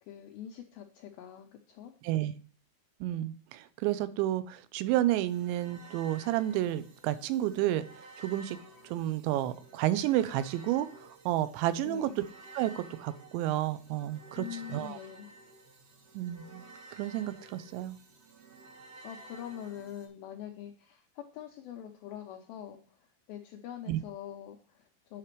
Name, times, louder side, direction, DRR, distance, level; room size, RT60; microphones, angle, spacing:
voice 1, 0.0-2.0 11.8-12.2 14.4-15.3 19.0-25.2, left 10 dB, 90° left, 3 dB, 2.1 m, -44 dB
voice 2, 3.0-7.9 8.2-8.6 8.8-12.2 12.5-15.0 16.1-16.6 17.0-18.0 23.9-24.0, right 13 dB, 90° right, 13 dB, 3.0 m, -31 dB
sound 1, 5.3-20.1, right 2 dB, 60° right, 2.5 m, -53 dB
8.9 x 5.0 x 4.6 m, 0.42 s
omnidirectional pair, 5.1 m